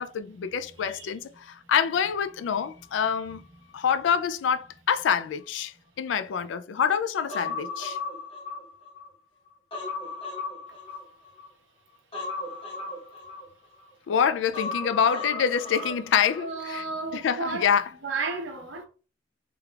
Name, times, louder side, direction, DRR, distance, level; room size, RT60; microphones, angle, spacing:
voice 1, 0.0-3.4 3.7-8.0 14.1-16.8 17.1-17.9, left 7 dB, 70° left, 0.3 m, -26 dB
voice 2, 0.8-1.1 16.4-17.7 18.0-18.8, right 3 dB, 85° right, 1.0 m, -33 dB
Human voice, 7.3-9.1 9.5-11.5 12.1-13.9 14.5-16.5 16.8-16.9, left 3 dB, 30° left, 0.9 m, -36 dB
3.4 x 2.3 x 3.3 m
head